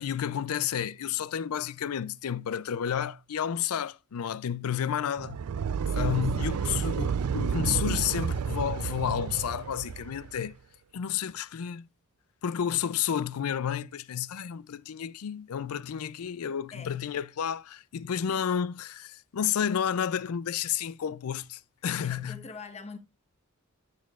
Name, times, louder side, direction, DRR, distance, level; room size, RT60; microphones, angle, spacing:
voice 1, 0.0-5.4 5.9-10.6 10.9-11.9 12.4-22.4, left 9 dB, 80° left, 0.4 m, -31 dB
sound 1, 5.2-10.4, right 6 dB, 90° right, 0.4 m, -30 dB
voice 2, 5.9-6.3 16.7-17.0 18.3-18.5 22.0-23.0, left 4 dB, 30° left, 1.1 m, -44 dB
14.0 x 6.6 x 2.4 m
head